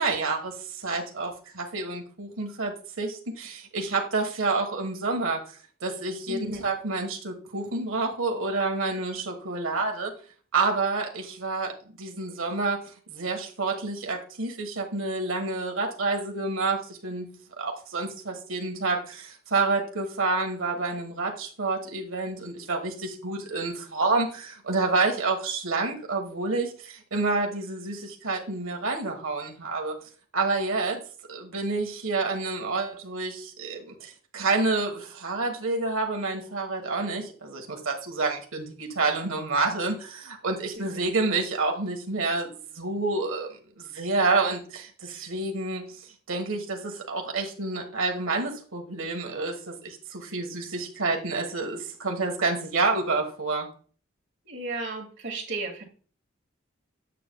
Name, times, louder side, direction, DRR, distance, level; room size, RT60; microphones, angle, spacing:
voice 1, 0.0-5.4 5.8-10.1 10.5-12.8 13.1-17.3 17.6-29.9 30.3-31.0 31.3-53.7, right 3 dB, 85° right, 3 dB, 1.4 m, -28 dB
voice 2, 6.3-6.6 40.7-41.1 54.4-55.8, right 3 dB, 60° right, 2 dB, 2.0 m, -34 dB
8.3 x 7.2 x 2.3 m, 0.41 s
head